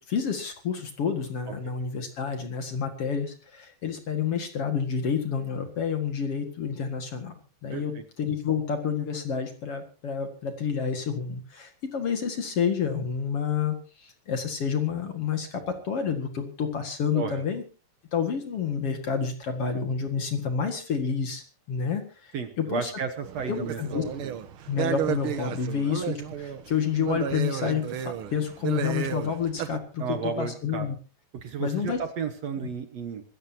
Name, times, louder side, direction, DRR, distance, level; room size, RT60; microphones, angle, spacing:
voice 1, 0.0-7.9 8.2-17.6 18.1-22.9 23.5-24.0 24.7-30.9 31.6-32.0 32.6-32.7, left 7 dB, 50° left, 6 dB, 2.5 m, -29 dB
voice 2, 7.7-8.0 17.1-17.4 22.3-24.3 30.0-30.9 31.3-33.2, right 6 dB, 60° right, 7 dB, 2.2 m, -33 dB
sound 1, 23.2-29.8, right 9 dB, 80° right, 1.2 m, -32 dB
25.5 x 14.5 x 2.8 m, 0.35 s
omnidirectional pair, 3.9 m